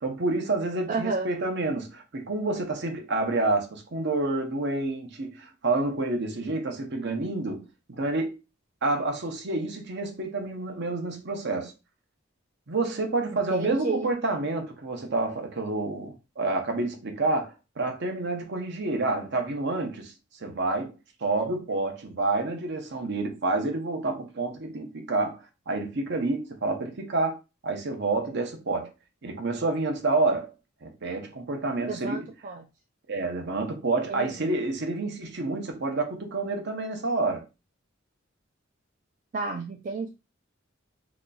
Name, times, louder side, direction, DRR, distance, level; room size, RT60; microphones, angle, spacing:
voice 1, 0.0-8.4 8.8-11.7 12.7-21.0 21.2-28.9 29.2-30.5 30.8-32.3 33.1-37.5, right 2 dB, 60° right, 0.8 m, -29 dB
voice 2, 0.9-1.3 13.3-14.1 31.8-32.6 34.1-34.6 39.3-40.1, right 3 dB, 45° right, 0.4 m, -31 dB
2.9 x 2.3 x 3.9 m
head